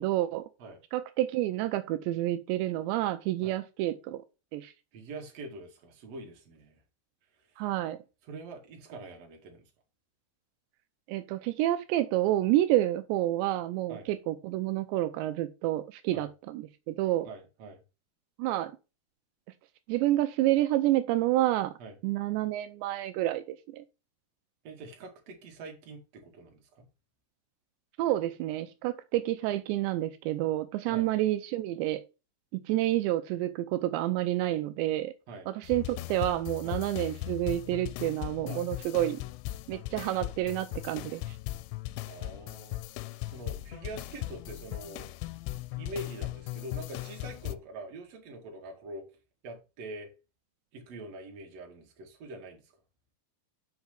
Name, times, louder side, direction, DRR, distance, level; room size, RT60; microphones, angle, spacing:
voice 1, 0.0-0.5 0.9-4.2 4.5-4.7 7.6-8.0 11.1-17.3 18.4-18.7 19.9-21.7 22.0-23.8 28.0-32.0 32.5-35.1 35.5-39.2 39.7-41.4, right 14 dB, 85° right, 2.9 m, -29 dB
voice 2, 4.9-6.8 7.6-7.7 8.3-9.6 13.9-14.1 16.1-16.3 17.2-17.8 21.8-22.0 24.6-26.8 30.9-31.1 35.3-35.5 36.6-36.8 38.5-38.6 42.0-42.8 43.2-45.1 45.7-49.0 49.4-50.1 50.7-52.6, right 2 dB, 45° right, 2.5 m, -44 dB
sound 1, 35.6-47.6, left 17 dB, 85° left, 2.8 m, -38 dB
6.4 x 5.9 x 5.7 m
omnidirectional pair, 5.1 m